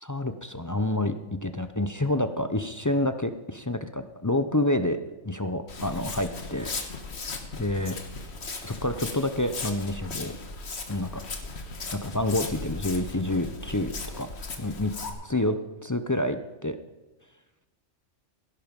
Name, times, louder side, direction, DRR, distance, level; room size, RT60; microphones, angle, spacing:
voice 1, 0.0-1.1 1.4-5.0 5.2-6.7 7.6-8.0 8.6-10.3 10.9-11.2 11.9-14.3 14.6-14.9 15.2-15.6 15.8-16.8, left 1 dB, 20° left, 9 dB, 0.5 m, -28 dB
Walk footsteps, 5.7-15.1, left 3 dB, 60° left, 1.7 m, -37 dB
16.5 x 11.0 x 5.3 m, 1.1 s
omnidirectional pair, 1.3 m